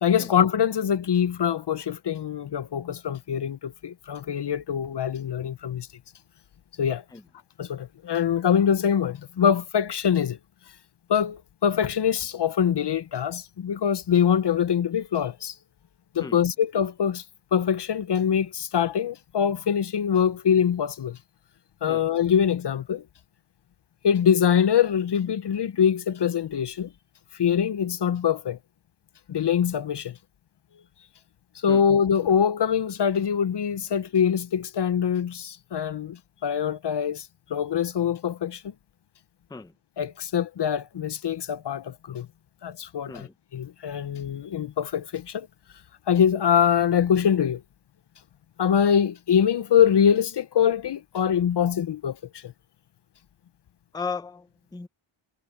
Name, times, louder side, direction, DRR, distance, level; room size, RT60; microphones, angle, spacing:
voice 1, 0.0-5.9 6.8-7.0 7.6-10.4 11.1-15.5 16.1-17.2 17.5-21.2 21.8-23.0 24.0-26.9 27.4-28.6 29.3-30.2 31.6-38.7 40.0-42.3 42.6-45.5 46.1-47.6 48.6-52.5, left 8 dB, 55° left, 0.7 m, -24 dB
voice 2, 53.9-54.9, left 4 dB, 10° left, 0.5 m, -36 dB
wide cardioid pair, 155°, 49 cm